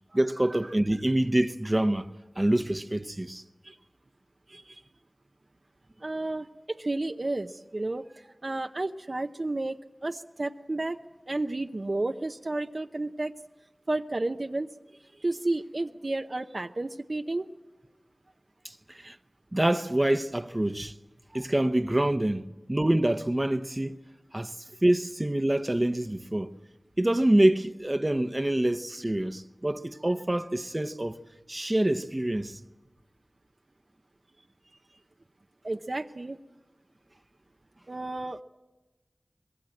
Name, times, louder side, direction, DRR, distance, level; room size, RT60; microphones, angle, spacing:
voice 1, 0.1-2.1 2.4-3.4 18.6-19.2 19.5-20.9 21.3-24.0 24.3-24.6 24.8-26.5 27.0-31.2 31.5-32.6, right 1 dB, 30° right, 0.9 m, -26 dB
voice 2, 4.5-4.8 6.0-11.0 11.3-13.3 13.9-14.7 15.1-17.5 21.3-21.4 35.6-36.4 37.9-38.4, right 2 dB, 55° right, 0.7 m, -32 dB
25.0 x 21.0 x 7.8 m
wide cardioid pair, 45°, 0 cm